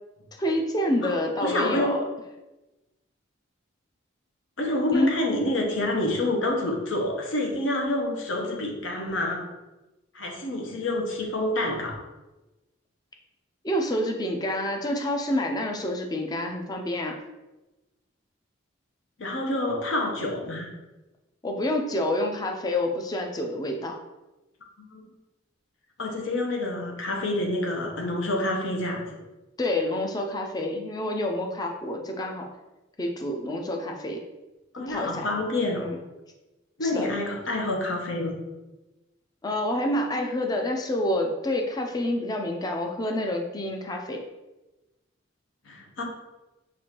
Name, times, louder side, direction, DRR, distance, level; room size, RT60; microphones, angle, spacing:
voice 1, 0.4-2.0 4.9-5.1 13.6-17.2 21.4-24.0 29.6-32.5 33.0-34.2 34.9-35.3 35.8-36.0 36.8-37.1 39.4-44.2, left 1 dB, 20° left, 2 dB, 0.4 m, -28 dB
voice 2, 1.0-1.9 4.6-9.4 10.1-12.0 19.2-20.7 24.8-25.0 26.0-29.2 34.7-35.9 36.8-38.4 45.7-46.0, left 1 dB, 75° left, 1 dB, 0.8 m, -28 dB
6.1 x 2.5 x 2.9 m, 1.1 s
head